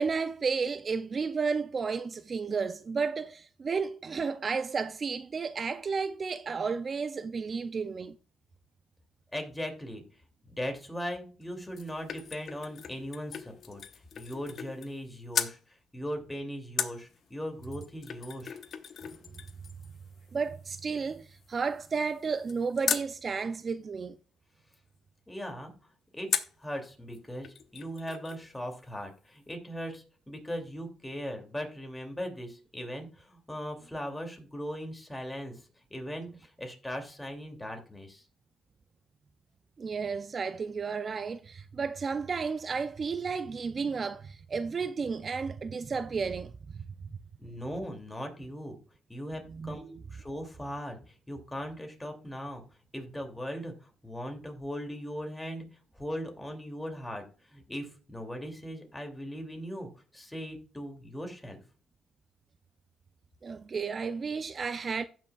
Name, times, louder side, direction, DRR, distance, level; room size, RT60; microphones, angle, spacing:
voice 1, 0.0-8.2 20.3-24.2 39.8-46.8 49.3-49.8 63.4-65.0, right 5 dB, 40° right, 0.4 m, -32 dB
voice 2, 9.3-10.0 10.4-13.8 14.2-18.6 25.3-25.7 26.1-26.3 26.6-35.6 35.9-38.3 47.4-48.8 49.1-52.6 52.9-55.7 55.9-61.6, equal, 10° left, 2.5 m, -39 dB
sound 1, 11.4-15.0 15.3-15.6 16.8-23.1 26.3-26.6 27.1-27.2 27.4-28.4 28.7-28.8, left 7 dB, 60° left, 0.8 m, -38 dB
15.5 x 6.1 x 2.3 m
cardioid pair, 95°, 0 cm